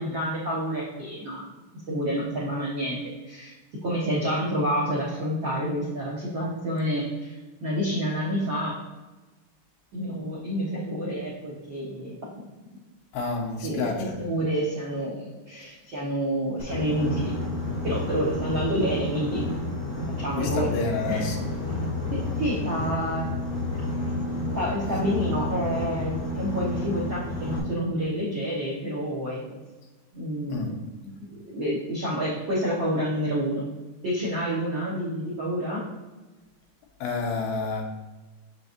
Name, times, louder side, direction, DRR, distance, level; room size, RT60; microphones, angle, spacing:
voice 1, 0.0-1.4 1.9-3.5 3.8-7.3 7.6-8.8 9.9-12.2 13.6-17.3 17.8-19.5 20.2-20.8 21.1-21.3 22.1-23.3 24.5-29.6 30.1-30.7 31.2-33.7 34.0-35.9, equal, 70° right, -6 dB, 1.1 m, -28 dB
voice 2, 13.1-14.2 18.4-18.5 20.3-21.4 30.5-30.7 37.0-37.8, left 4 dB, 80° left, 1 dB, 2.9 m, -29 dB
Boat Water vehicle, 16.6-27.6, left 2 dB, 45° left, 3.0 m, -30 dB
6.8 x 6.7 x 2.6 m, 1.2 s
omnidirectional pair, 4.4 m